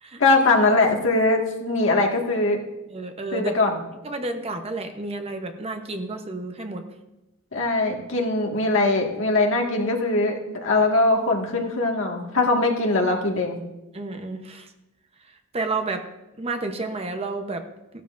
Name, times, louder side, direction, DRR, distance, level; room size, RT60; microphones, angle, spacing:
voice 1, 0.2-2.6 3.3-3.8 7.5-13.6, left 2 dB, 65° left, 1 dB, 1.8 m, -21 dB
voice 2, 2.9-3.5 4.0-6.9 13.9-14.7 15.5-16.0 16.4-17.6, right 3 dB, 30° right, 6 dB, 0.8 m, -30 dB
16.0 x 12.5 x 2.6 m, 0.98 s
head